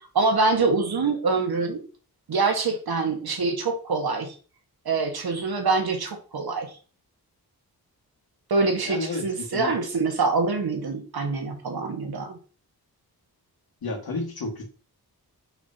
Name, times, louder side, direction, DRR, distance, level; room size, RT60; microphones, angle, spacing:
voice 1, 0.1-1.8 2.3-4.3 4.8-6.7 8.5-12.4, right 4 dB, 70° right, 4 dB, 1.6 m, -25 dB
voice 2, 8.9-9.7 13.8-14.6, left 3 dB, 65° left, 0 dB, 2.1 m, -31 dB
5.9 x 5.6 x 2.9 m, 0.38 s
wide cardioid pair, 120°, 39 cm